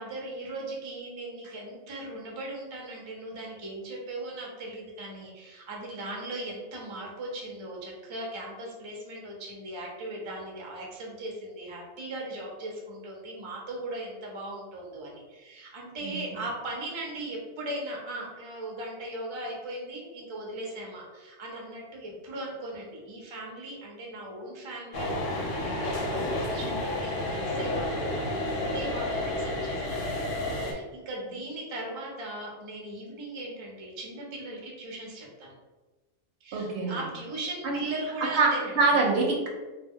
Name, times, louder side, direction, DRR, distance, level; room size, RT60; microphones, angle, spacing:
voice 1, 0.0-35.5 36.4-38.8, right 1 dB, 40° right, -2 dB, 0.4 m, -38 dB
sound 1, 24.9-30.7, left 1 dB, 90° left, 1.0 m, -30 dB
voice 2, 36.5-37.0 37.6-37.8 38.4-38.5 38.8-39.5, right 3 dB, 65° right, 0 dB, 0.8 m, -24 dB
2.2 x 2.2 x 3.5 m, 1.2 s
omnidirectional pair, 1.2 m